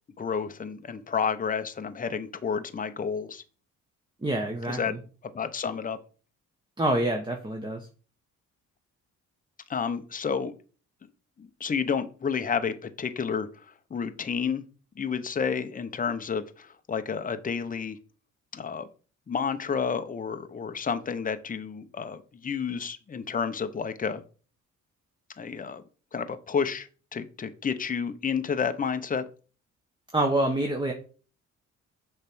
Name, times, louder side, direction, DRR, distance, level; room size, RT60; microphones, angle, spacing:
voice 1, 0.2-3.4 4.7-5.0 5.2-6.0 9.7-10.5 11.4-14.6 15.0-18.0 18.5-18.9 19.3-24.2 25.4-25.8 26.1-29.3, left 6 dB, 25° left, 9 dB, 0.8 m, -30 dB
voice 2, 4.2-5.0 6.8-7.9 30.1-30.9, right 1 dB, 15° right, 2 dB, 1.1 m, -26 dB
6.7 x 3.3 x 6.0 m, 0.38 s
cardioid pair, 90°, 30 cm